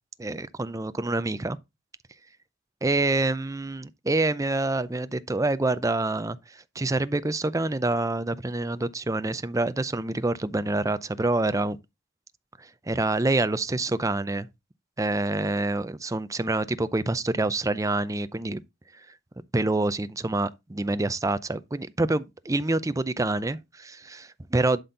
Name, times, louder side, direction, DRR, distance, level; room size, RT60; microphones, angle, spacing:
voice 1, 0.2-1.6 2.8-11.8 12.6-14.5 15.0-18.6 19.5-24.8, right 2 dB, 15° right, 0.5 m, -27 dB
11.5 x 4.3 x 3.9 m
head